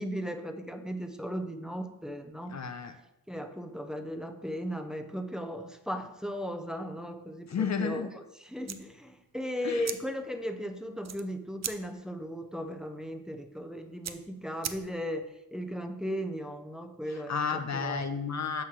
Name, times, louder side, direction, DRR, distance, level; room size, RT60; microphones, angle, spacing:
voice 1, 0.0-2.6 3.3-18.0, equal, ahead, 5 dB, 0.6 m, -37 dB
voice 2, 2.5-2.9 7.5-8.1 9.6-9.9 17.1-18.6, left 6 dB, 50° left, 8 dB, 0.7 m, -32 dB
sound 1, 8.6-15.3, right 8 dB, 45° right, 0.5 m, -43 dB
8.0 x 3.1 x 5.7 m, 0.87 s
wide cardioid pair, 90°, 36 cm